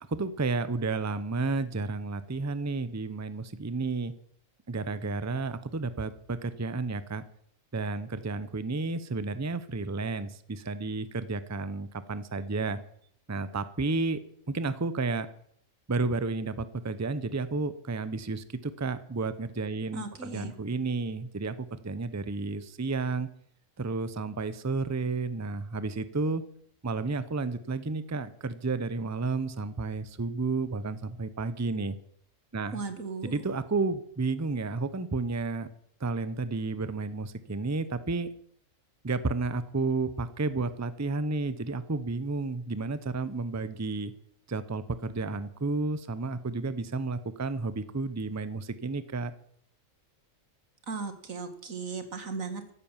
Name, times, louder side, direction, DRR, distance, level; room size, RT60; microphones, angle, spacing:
voice 1, 0.1-4.1 4.7-7.2 7.7-12.8 13.3-14.2 14.5-15.3 15.9-23.3 23.8-26.4 26.8-32.0 32.5-32.8 33.2-35.7 36.0-38.3 39.0-44.1 44.5-49.3, right 3 dB, 15° right, 13 dB, 0.7 m, -31 dB
voice 2, 19.9-20.5 32.7-33.4 50.9-52.7, right 4 dB, 90° right, 8 dB, 2.3 m, -37 dB
14.5 x 10.5 x 7.3 m, 0.66 s
omnidirectional pair, 1.4 m